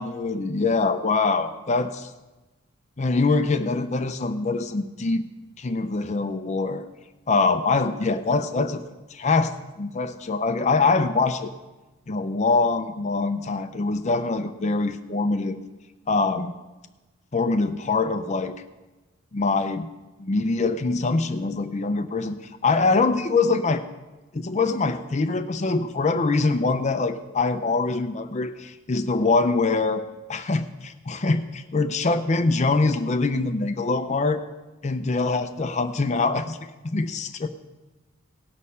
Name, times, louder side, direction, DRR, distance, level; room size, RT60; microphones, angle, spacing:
voice 1, 0.0-2.1 3.0-5.2 5.6-6.8 7.3-8.8 9.1-11.5 12.1-15.6 16.1-16.5 17.3-18.5 19.3-19.9 20.2-23.8 24.3-30.0 30.3-34.4 34.8-36.6 36.8-37.5, left 3 dB, 35° left, 9 dB, 0.5 m, -24 dB
18.0 x 6.4 x 5.5 m, 1.1 s
head